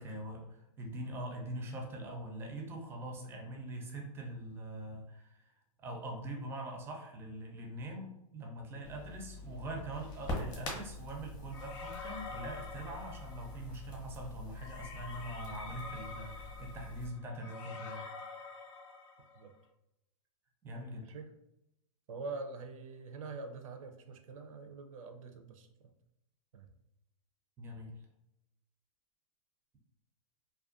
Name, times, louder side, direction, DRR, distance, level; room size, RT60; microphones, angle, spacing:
voice 1, 0.0-5.5 5.8-18.1 20.6-21.1 27.6-28.0, right 1 dB, 15° right, 1 dB, 0.4 m, -43 dB
Crackle, 8.8-17.1, left 2 dB, 25° left, 0.7 m, -44 dB
sound 1, 11.5-13.7 14.6-19.5, left 4 dB, 60° left, 0.5 m, -47 dB
voice 2, 22.1-25.9 26.5-26.7, right 3 dB, 70° right, 5 dB, 0.5 m, -45 dB
2.3 x 2.2 x 2.4 m, 0.86 s
hypercardioid pair, 135°, 18 cm